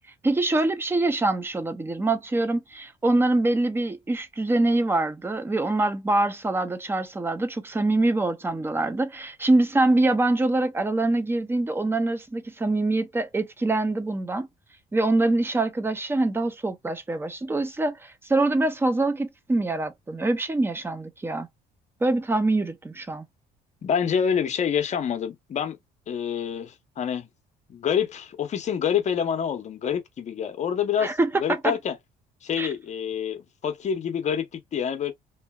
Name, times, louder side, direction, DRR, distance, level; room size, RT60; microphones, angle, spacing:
voice 1, 0.2-14.5 14.9-21.5 22.0-23.3 31.0-31.7 32.6-32.7, right 2 dB, 15° right, 0.6 m, -24 dB
voice 2, 23.8-25.8 26.1-27.3 27.7-32.0 32.4-35.1, left 8 dB, 45° left, 0.8 m, -27 dB
2.7 x 2.7 x 2.2 m
cardioid pair, 110°, 17 cm